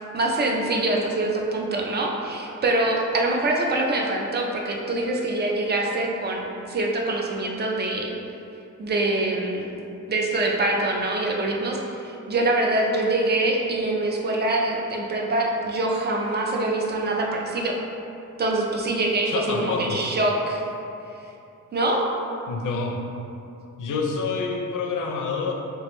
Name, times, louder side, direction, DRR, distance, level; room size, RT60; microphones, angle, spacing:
voice 1, 0.1-8.2 8.8-9.7 10.1-17.8 18.4-20.6 21.7-22.0, right 2 dB, 35° right, 0 dB, 0.4 m, -24 dB
voice 2, 19.2-20.0 22.5-23.0 23.8-25.5, left 4 dB, 75° left, 1 dB, 0.5 m, -27 dB
3.4 x 3.2 x 3.0 m, 2.7 s
wide cardioid pair, 165°, 31 cm